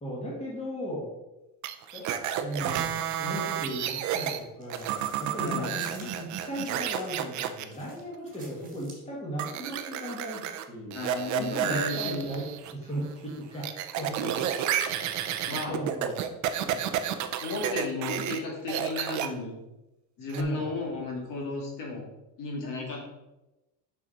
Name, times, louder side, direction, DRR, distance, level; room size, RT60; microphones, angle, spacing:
voice 1, 0.0-1.1 1.9-11.0 11.4-13.6 14.0-14.1 15.5-16.2 20.3-20.7, equal, 15° left, -4 dB, 2.0 m, -36 dB
sound 1, 1.6-4.4 4.7-7.6 9.4-10.6 10.9-12.7 13.0-18.4 18.7-19.3 20.3-20.4, right 10 dB, 45° right, 0.6 m, -31 dB
sound 2, 4.2-7.1 7.4-9.1, right 3 dB, 20° right, 1.9 m, -51 dB
voice 2, 5.4-5.7 10.9-12.3 14.2-14.5 15.5-15.8 16.6-16.8 17.4-19.6 20.2-22.1 22.4-23.1, left 3 dB, 55° left, -2 dB, 2.4 m, -34 dB
6.4 x 5.8 x 4.3 m, 0.98 s
cardioid pair, 160°, 39 cm